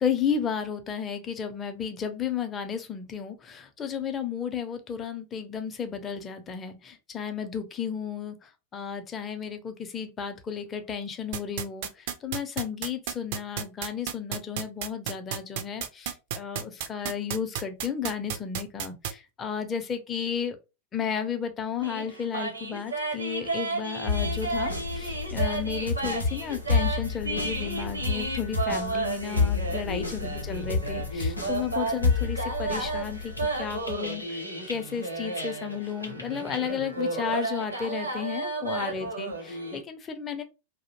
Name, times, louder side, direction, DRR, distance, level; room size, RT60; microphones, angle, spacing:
voice 1, 0.0-20.6 20.9-40.4, left 7 dB, 25° left, 0.5 m, -33 dB
sound 1, 11.3-19.1, right 9 dB, 50° right, 0.3 m, -31 dB
sound 2, 21.8-39.8, right 3 dB, 85° right, 0.7 m, -33 dB
sound 3, 24.1-35.7 36.0-36.7, left 4 dB, 85° left, 0.6 m, -30 dB
2.4 x 2.0 x 2.9 m
figure-of-eight pair, 90°, 0 cm